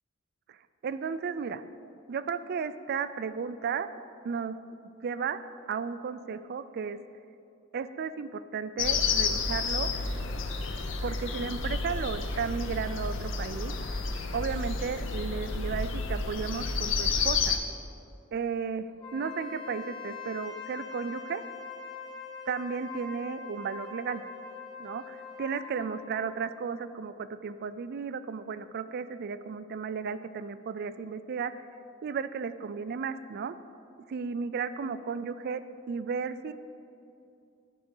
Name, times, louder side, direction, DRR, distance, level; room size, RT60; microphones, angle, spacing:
voice 1, 0.8-1.6 2.1-3.9 4.2-4.6 5.0-5.4 5.7-7.0 7.7-9.9 11.0-13.7 14.3-17.6 18.3-18.9 19.1-21.4 22.5-24.2 24.8-31.5 32.0-33.5 34.1-35.6 35.9-36.5, right 6 dB, 50° right, 13 dB, 0.3 m, -34 dB
sound 1, 8.8-17.6, left 4 dB, 65° left, 0.7 m, -30 dB
Wind instrument woodwind instrument, 19.0-26.4, left 5 dB, 25° left, 1.4 m, -43 dB
11.0 x 4.9 x 5.5 m, 2.6 s
head